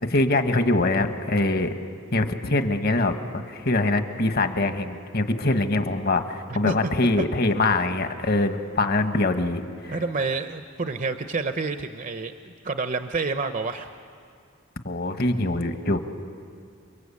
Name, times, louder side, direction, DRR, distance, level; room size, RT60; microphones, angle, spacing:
voice 1, 0.0-1.7 2.1-10.0 14.8-16.0, left 2 dB, 50° left, 7 dB, 1.4 m, -23 dB
voice 2, 6.5-6.9 9.9-13.9, right 3 dB, 40° right, 8 dB, 0.7 m, -28 dB
29.5 x 22.5 x 8.5 m, 2.3 s
head